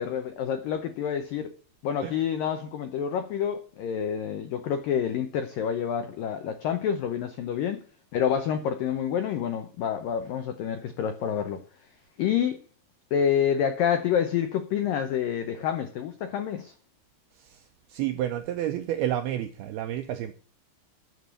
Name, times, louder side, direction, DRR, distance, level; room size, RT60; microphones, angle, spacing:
voice 1, 0.0-1.5 1.8-7.8 8.1-11.6 12.2-12.6 13.1-16.7, left 8 dB, 80° left, 2.0 m, -28 dB
voice 2, 17.3-20.3, right 12 dB, 80° right, 2.2 m, -31 dB
9.3 x 7.3 x 8.3 m
omnidirectional pair, 5.3 m